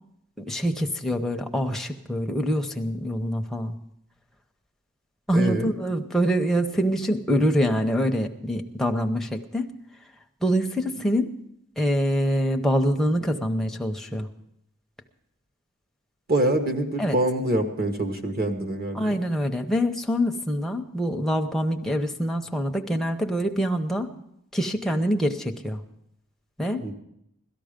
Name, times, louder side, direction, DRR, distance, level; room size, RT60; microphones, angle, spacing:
voice 1, 0.4-3.8 5.3-9.7 10.4-11.3 11.8-14.3 17.0-17.2 19.0-24.1 24.5-25.8 26.6-26.9, equal, ahead, 3 dB, 0.7 m, -25 dB
voice 2, 5.3-5.7 16.3-19.2 26.8-26.9, right 1 dB, 40° right, 4 dB, 1.4 m, -25 dB
17.5 x 13.0 x 5.1 m, 0.78 s
head